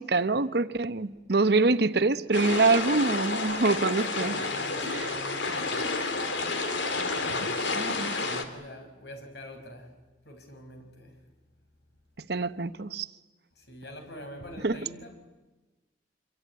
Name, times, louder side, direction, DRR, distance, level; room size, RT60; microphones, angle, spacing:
voice 1, 0.0-4.4 4.8-5.2 7.7-8.2 12.2-13.1 14.6-14.8, right 3 dB, 60° right, 13 dB, 0.9 m, -25 dB
sound 1, 2.3-8.4, left 3 dB, 90° left, 2.7 m, -30 dB
voice 2, 4.1-6.9 8.2-10.0 10.2-11.2 13.6-15.2, equal, 70° left, 5 dB, 5.1 m, -45 dB
26.5 x 23.0 x 9.4 m, 1.2 s
head